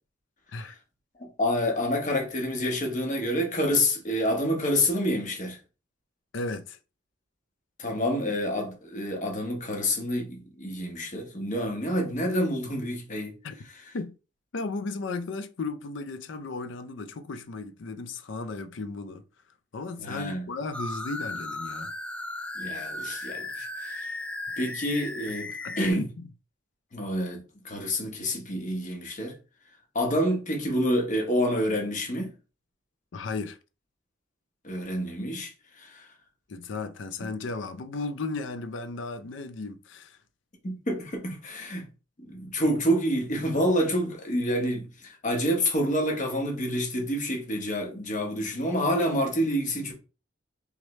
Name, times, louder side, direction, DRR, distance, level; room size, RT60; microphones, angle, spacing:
voice 1, 1.2-5.6 7.8-13.3 20.0-20.5 22.6-24.2 24.6-26.1 26.9-29.4 29.9-32.3 34.6-36.1 37.2-37.3 40.6-41.9 42.2-49.9, equal, 40° left, 1.1 m, -28 dB
voice 2, 6.3-6.8 13.4-13.5 13.9-14.1 14.5-19.2 19.7-21.9 25.6-26.2 33.1-33.6 36.5-40.2, left 3 dB, 75° left, 0.5 m, -35 dB
sound 1, 20.7-25.9, left 2 dB, 5° left, 0.3 m, -36 dB
3.6 x 3.2 x 3.1 m
head